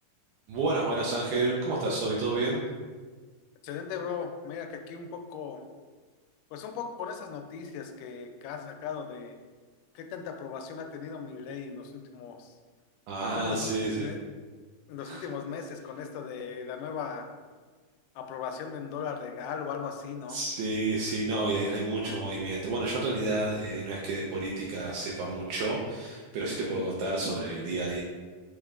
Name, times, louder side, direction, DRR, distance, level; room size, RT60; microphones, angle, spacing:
voice 1, 0.5-2.6 13.1-14.1 15.1-15.2 20.3-28.0, right 2 dB, 80° right, -3 dB, 2.0 m, -30 dB
voice 2, 3.6-5.6 6.5-9.4 10.0-12.6 13.4-14.2 14.9-17.3 18.2-20.4, left 6 dB, 85° left, 5 dB, 2.1 m, -38 dB
5.2 x 4.3 x 2.4 m, 1.4 s
omnidirectional pair, 3.7 m